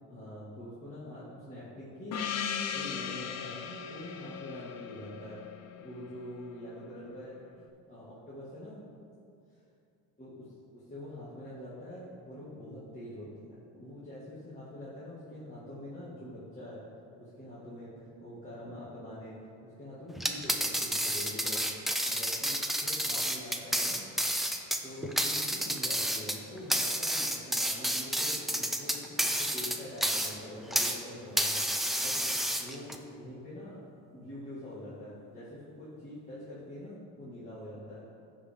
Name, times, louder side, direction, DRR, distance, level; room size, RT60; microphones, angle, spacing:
voice 1, 0.1-5.4 5.7-8.8 10.2-10.4 10.7-16.8 17.2-19.3 19.6-21.7 22.1-24.0 24.8-31.6 32.0-33.8 34.1-38.1, left 1 dB, 20° left, -10 dB, 2.0 m, -45 dB
Gong, 2.1-6.4, left 7 dB, 50° left, 0.6 m, -38 dB
sound 1, 20.1-31.0 31.4-33.0, equal, ahead, 0.5 m, -30 dB
14.5 x 5.2 x 3.6 m, 2.5 s
cardioid pair, 130°, 34 cm